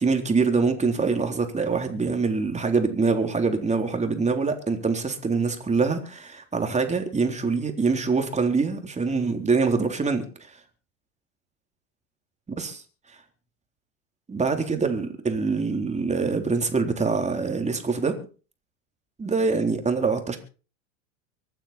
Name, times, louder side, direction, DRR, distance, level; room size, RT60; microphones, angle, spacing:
voice 1, 0.0-10.3 12.6-12.7 14.3-18.2 19.2-20.4, right 4 dB, 15° right, 5 dB, 3.8 m, -24 dB
24.5 x 9.3 x 4.4 m, 0.37 s
hypercardioid pair, 90°, 39 cm